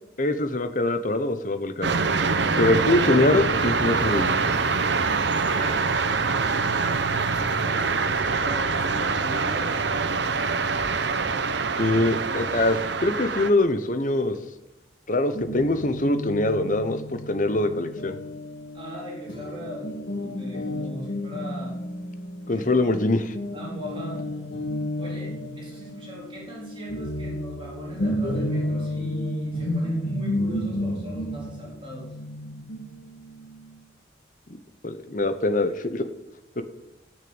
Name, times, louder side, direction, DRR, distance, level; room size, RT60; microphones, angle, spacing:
voice 1, 0.2-1.9 2.6-4.4 11.8-14.4 15.1-18.2 22.5-23.3 34.8-36.1 36.6-36.7, left 2 dB, 45° left, 9 dB, 1.0 m, -23 dB
sound 1, 1.8-13.5, right 4 dB, 70° right, 0.9 m, -24 dB
voice 2, 5.3-5.9 6.2-8.0 8.4-9.8 18.7-19.9 20.2-21.8 22.5-22.9 23.5-24.2 25.0-32.1, equal, 30° right, -5 dB, 3.9 m, -39 dB
Guitar, 15.3-23.0 23.3-33.8, left 1 dB, 70° left, 1.7 m, -32 dB
14.0 x 6.6 x 8.9 m, 0.95 s
head